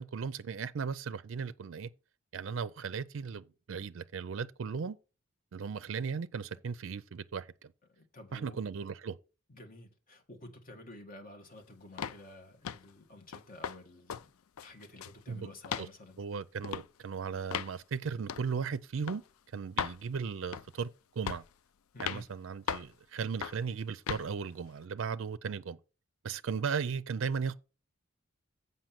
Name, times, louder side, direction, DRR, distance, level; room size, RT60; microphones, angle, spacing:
voice 1, 0.0-1.9 2.3-5.0 5.5-7.7 8.3-9.2 15.3-15.5 15.8-15.9 16.2-19.2 19.5-20.9 21.2-21.4 22.0-25.8 26.2-27.5, right 6 dB, 65° right, 0.4 m, -36 dB
voice 2, 8.0-8.6 9.5-14.3 14.6-16.2 21.9-22.3, left 1 dB, 40° left, 1.6 m, -51 dB
sound 1, 12.0-12.2 12.6-12.9 13.3-13.8 14.1-14.3 14.6-15.2 15.6-15.9 16.6-16.9 17.5-17.7 18.3-18.5 19.1-19.2 19.8-20.0 20.5-20.8 21.3-21.5 22.0-22.2 22.7-22.9 23.4-23.6 24.1-24.3, left 8 dB, 90° left, 0.4 m, -37 dB
7.5 x 5.6 x 5.8 m
head